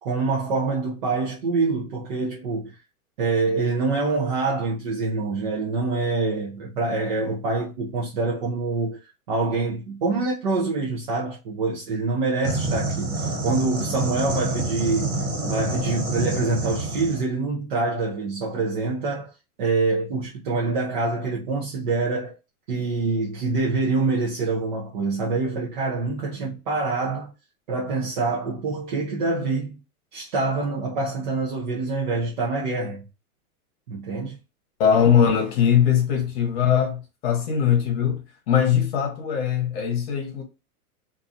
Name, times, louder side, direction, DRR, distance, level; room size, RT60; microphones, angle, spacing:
voice 1, 0.0-2.8 3.2-9.0 9.3-19.3 19.6-22.4 22.7-27.3 27.7-29.8 30.1-33.0 33.9-34.4, right 3 dB, 35° right, 0.5 m, -25 dB
sound 1, 12.4-17.3, right 2 dB, 50° right, 1.4 m, -27 dB
voice 2, 34.8-38.2 38.5-40.4, left 8 dB, 40° left, 1.0 m, -21 dB
2.6 x 2.2 x 2.6 m
hypercardioid pair, 155°, 45 cm